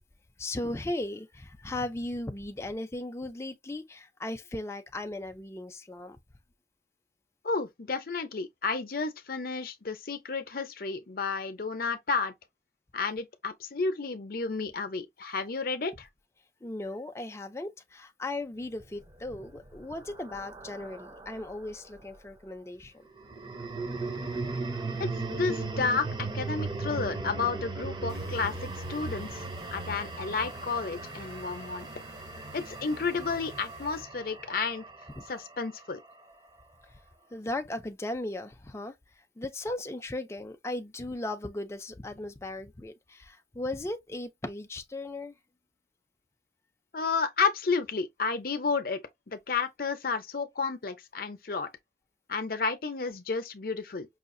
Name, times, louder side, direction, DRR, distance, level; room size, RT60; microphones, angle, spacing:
voice 1, 0.4-6.2 16.6-22.9 35.2-35.3 37.3-38.9 39.4-45.3, left 2 dB, 15° left, 0.4 m, -37 dB
voice 2, 7.4-12.3 12.9-16.1 25.0-29.4 29.7-31.9 32.5-34.9 35.3-36.0 46.9-49.0 49.3-51.7 52.3-54.1, left 4 dB, 55° left, 0.7 m, -31 dB
sound 1, 19.1-21.6 23.2-35.5, right 3 dB, 25° right, 0.7 m, -37 dB
sound 2, 28.1-34.0, right 1 dB, 85° right, 2.6 m, -50 dB
5.5 x 2.4 x 2.5 m
head